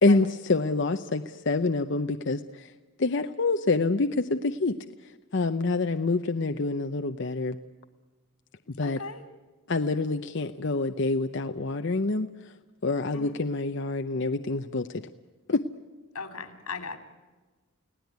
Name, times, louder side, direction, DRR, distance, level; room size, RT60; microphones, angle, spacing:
voice 1, 0.0-2.7 3.0-4.8 5.0-7.6 8.8-9.0 9.7-12.5 12.8-15.0 15.5-15.6, left 3 dB, 55° left, 7 dB, 0.7 m, -27 dB
voice 2, 8.8-9.2 13.1-13.4 16.1-17.0, left 4 dB, 90° left, 7 dB, 3.2 m, -38 dB
30.0 x 18.0 x 9.3 m, 1.3 s
head